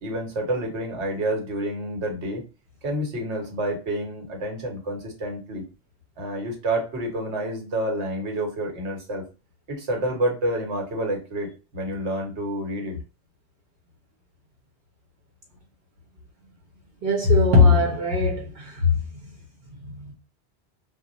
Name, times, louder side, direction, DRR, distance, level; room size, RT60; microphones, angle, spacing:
voice 1, 0.0-2.4 2.8-5.6 6.2-9.2 9.7-13.0, right 1 dB, 90° right, 1.2 m, -28 dB
voice 2, 17.0-18.9 19.8-20.1, left 3 dB, 65° right, 0.9 m, -19 dB
2.3 x 2.1 x 3.8 m
omnidirectional pair, 1.1 m